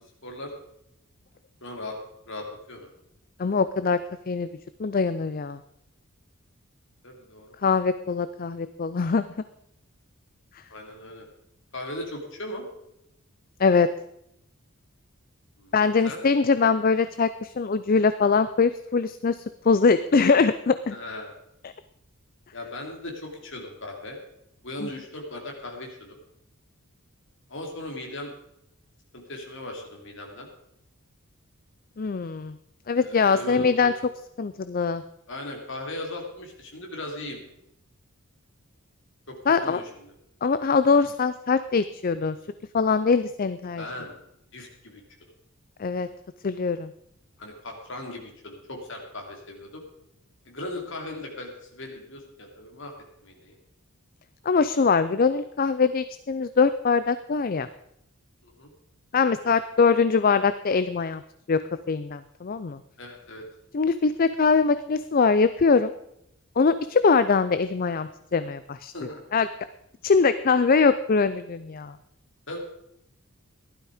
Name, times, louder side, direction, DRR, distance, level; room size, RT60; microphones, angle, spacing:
voice 1, 1.6-2.0 2.3-2.9 7.0-7.5 10.7-11.2 11.7-12.6 15.6-15.7 16.0-16.2 20.9-21.3 22.5-24.2 24.6-26.2 27.5-28.3 29.1-30.5 32.9-33.9 35.3-37.4 39.3-39.4 39.6-40.1 43.8-44.2 44.5-45.0 47.4-49.8 50.4-52.9 53.2-53.6 58.4-58.7 63.0-63.4 68.9-69.2 72.5-72.6, left 1 dB, 60° left, 1 dB, 3.2 m, -38 dB
voice 2, 3.4-4.0 4.3-4.5 4.8-5.6 7.6-9.3 13.6-13.9 15.7-21.0 21.6-21.7 24.8-24.9 32.0-32.6 32.9-33.9 34.4-35.0 39.5-39.8 40.4-42.4 42.7-43.8 45.8-46.1 46.4-46.9 54.5-57.7 59.1-61.2 61.5-61.6 61.9-62.8 63.7-65.9 66.6-68.9 69.3-69.5 70.0-72.0, left 5 dB, 40° left, 13 dB, 0.4 m, -22 dB
15.0 x 12.0 x 5.0 m, 0.79 s
head